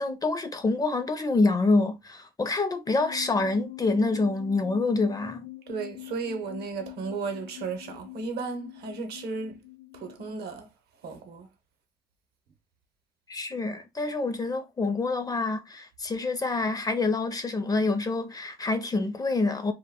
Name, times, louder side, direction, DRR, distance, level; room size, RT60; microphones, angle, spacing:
voice 1, 0.0-5.4 13.3-19.7, left 3 dB, 20° left, 0.4 m, -26 dB
sound 1, 2.9-10.3, left 19 dB, 70° left, 0.7 m, -44 dB
voice 2, 5.7-9.6 9.9-10.7 11.0-11.5, right 4 dB, 70° right, 0.7 m, -34 dB
2.2 x 2.1 x 3.5 m
cardioid pair, 110°, 17 cm